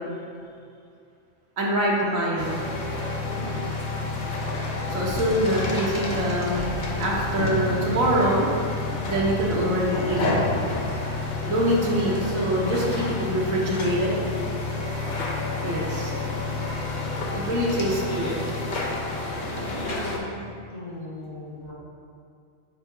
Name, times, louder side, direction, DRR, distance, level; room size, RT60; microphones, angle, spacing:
voice 1, 1.6-2.6 4.9-6.6 7.0-8.5 9.1-10.3 11.5-14.1 15.6-16.1 17.2-18.3, right 1 dB, 80° right, -4 dB, 1.5 m, -24 dB
sound 1, 2.4-20.2, left 2 dB, 45° left, 0.7 m, -29 dB
voice 2, 17.9-18.4 19.7-20.4 20.7-21.7, left 2 dB, 75° left, -6 dB, 1.7 m, -38 dB
4.9 x 4.5 x 4.5 m, 2.4 s
omnidirectional pair, 1.4 m